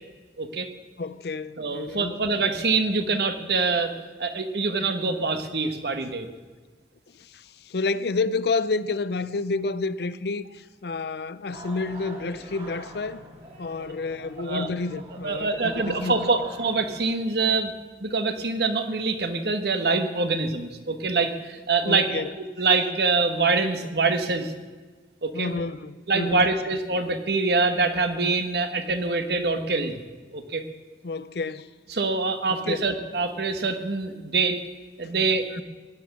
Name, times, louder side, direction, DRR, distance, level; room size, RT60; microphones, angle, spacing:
voice 1, 0.4-0.7 1.6-3.9 4.2-6.3 14.5-14.7 15.2-17.7 18.0-22.2 22.6-24.5 25.2-25.5 26.1-30.0 30.3-30.6 31.9-34.6 35.0-35.6, right 3 dB, 65° right, 1.3 m, -25 dB
voice 2, 1.0-2.3 7.2-13.2 13.6-16.3 21.8-22.3 25.3-26.5 31.0-31.7 32.5-32.9 35.0-35.1 35.5-35.6, left 3 dB, 65° left, 0.6 m, -30 dB
sound 1, 11.5-17.0, right 1 dB, 35° right, 2.9 m, -44 dB
16.5 x 10.5 x 6.0 m
head